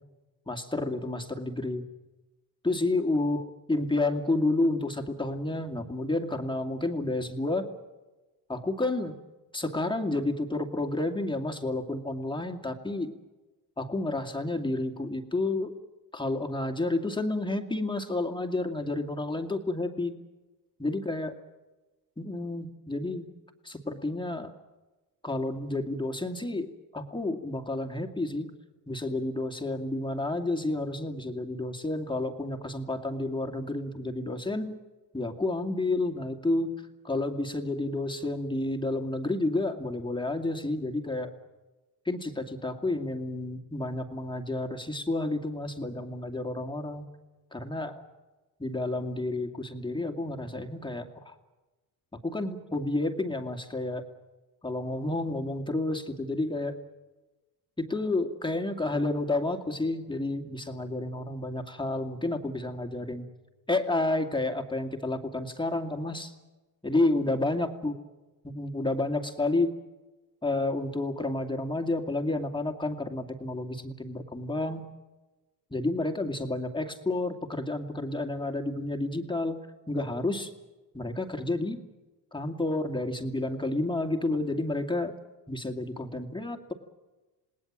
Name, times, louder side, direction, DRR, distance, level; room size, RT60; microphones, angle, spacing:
voice 1, 0.5-1.9 2.6-7.7 8.5-9.2 9.5-13.1 13.8-15.8 16.1-20.1 20.8-21.4 22.2-23.3 23.6-24.5 25.2-28.5 28.9-34.8 35.1-41.3 42.1-47.1 47.5-48.0 48.6-51.3 52.2-54.0 54.6-56.7 57.8-63.3 63.7-66.3 66.8-68.0 68.4-69.8 70.4-74.9 75.7-80.5 80.9-81.8 82.3-85.1 85.5-86.7, left 2 dB, 10° left, 4 dB, 2.4 m, -30 dB
27.5 x 19.5 x 7.5 m, 1.1 s
supercardioid pair, 75°, 47 cm